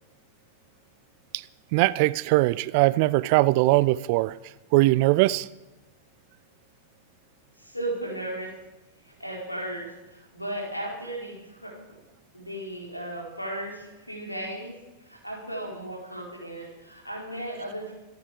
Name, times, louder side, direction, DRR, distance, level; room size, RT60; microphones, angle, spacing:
voice 1, 1.7-4.3 4.7-5.5, right 19 dB, 45° right, 0.5 m, -21 dB
voice 2, 7.6-8.5 9.0-12.0 12.3-17.9, right 1 dB, 85° left, 4.4 m, -36 dB
26.5 x 9.3 x 5.0 m
figure-of-eight pair, 90°, 0 cm